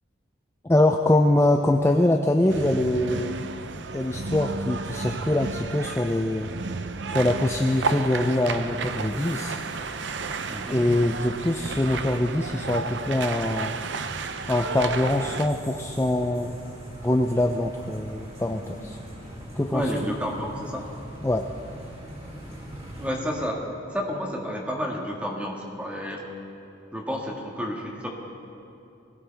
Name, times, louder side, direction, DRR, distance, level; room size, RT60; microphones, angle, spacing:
voice 1, 0.6-3.4 3.9-6.5 7.1-9.6 10.7-13.8 14.4-16.5 17.0-19.0 19.6-19.9 21.2-21.5, left 1 dB, 15° left, 4 dB, 0.4 m, -23 dB
sound 1, 2.5-15.5, right 4 dB, 65° right, 0.6 m, -32 dB
voice 2, 10.5-10.8 19.7-20.9 23.0-26.3 26.9-28.1, equal, 5° right, -1 dB, 1.7 m, -30 dB
sound 2, 14.7-23.1, equal, 30° right, 2.6 m, -41 dB
20.5 x 17.0 x 3.5 m, 2.8 s
head